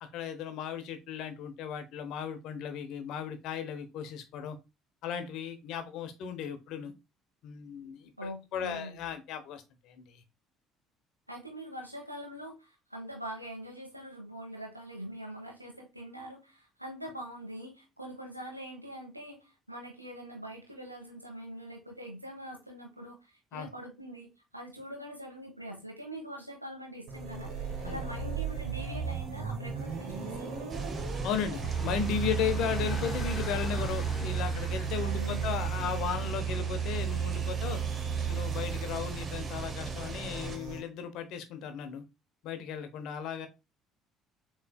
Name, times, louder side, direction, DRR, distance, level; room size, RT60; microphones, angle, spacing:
voice 1, 0.0-4.6 5.0-6.9 7.4-10.2 23.5-23.7 27.8-28.0 31.2-37.8 38.2-42.0 42.4-43.5, left 7 dB, 55° left, 0.8 m, -36 dB
voice 2, 8.2-9.1 11.3-24.3 24.5-30.5 35.0-35.6, equal, 90° right, 1.0 m, -43 dB
sound 1, 27.1-40.8, right 7 dB, 55° right, 1.8 m, -34 dB
sound 2, 30.7-40.6, right 4 dB, 30° right, 0.9 m, -41 dB
sound 3, 31.6-37.0, left 1 dB, 25° left, 2.5 m, -42 dB
6.7 x 3.2 x 2.3 m
figure-of-eight pair, 55°, 0 cm